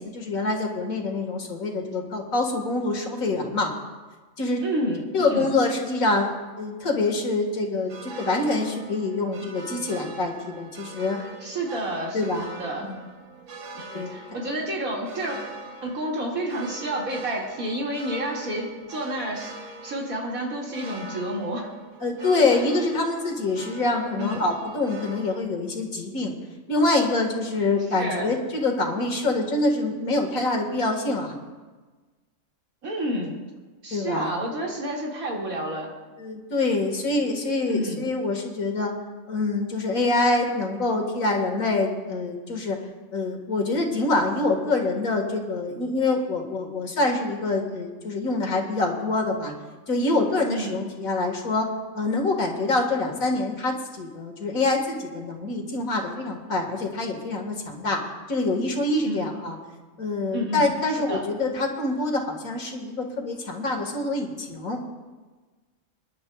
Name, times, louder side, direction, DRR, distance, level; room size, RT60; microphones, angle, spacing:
voice 1, 0.0-3.7 4.4-4.6 5.1-6.3 6.6-11.2 12.1-12.5 12.9-13.0 13.9-14.2 22.0-26.3 26.7-31.3 33.9-34.3 36.2-38.9 39.3-42.8 43.1-49.5 49.9-51.7 51.9-58.0 58.3-59.6 60.0-64.8, left 2 dB, 75° left, 2 dB, 2.1 m, -25 dB
voice 2, 4.6-5.0 5.3-5.5 11.4-12.3 12.6-12.8 13.7-15.4 15.8-21.7 24.2-24.4 27.9-28.3 32.8-33.4 33.8-35.9 37.7-38.0 50.5-50.8 59.0-59.3 60.3-60.7 61.0-61.2, right 1 dB, 80° right, -3 dB, 2.7 m, -30 dB
sound 1, 7.9-25.4, right 3 dB, 60° right, 1.3 m, -42 dB
27.5 x 10.5 x 2.3 m, 1.3 s
omnidirectional pair, 1.5 m